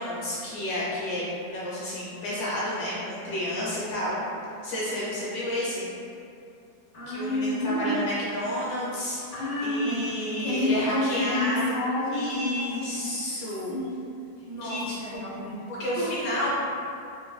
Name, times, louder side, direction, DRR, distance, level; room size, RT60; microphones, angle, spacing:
voice 1, 0.0-4.2 4.6-5.9 7.1-11.8 12.1-13.7 14.6-15.2 15.7-16.5, left 1 dB, 70° left, -7 dB, 1.1 m, -31 dB
voice 2, 6.9-7.9 9.3-13.1 13.7-14.1 14.4-15.6 16.0-16.5, left 1 dB, 50° left, -10 dB, 0.6 m, -30 dB
3.0 x 2.5 x 2.2 m, 2.5 s
omnidirectional pair, 2.0 m